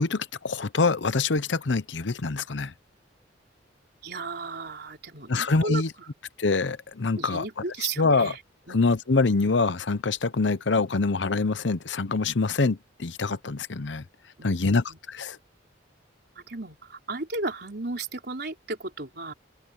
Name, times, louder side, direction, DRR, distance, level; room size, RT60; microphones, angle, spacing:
voice 1, 0.0-2.7 5.3-5.9 6.4-7.4 8.0-8.3 8.7-14.0 14.4-15.4, left 3 dB, 70° left, 0.8 m, -25 dB
voice 2, 4.0-5.8 7.2-8.4 8.7-8.8 14.4-15.0 16.4-19.3, right 3 dB, 60° right, 4.0 m, -35 dB
open air
head